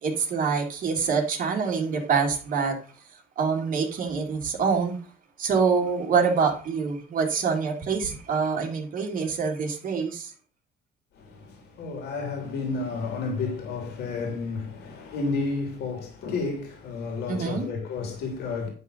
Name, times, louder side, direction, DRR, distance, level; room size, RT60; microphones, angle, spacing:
voice 1, 0.0-2.8 3.4-5.0 5.4-10.3 17.3-17.7, right 5 dB, 55° right, 2.6 m, -25 dB
voice 2, 11.1-18.7, left 4 dB, 75° left, 3.0 m, -31 dB
11.0 x 3.8 x 6.5 m
cardioid pair, 110°, 17 cm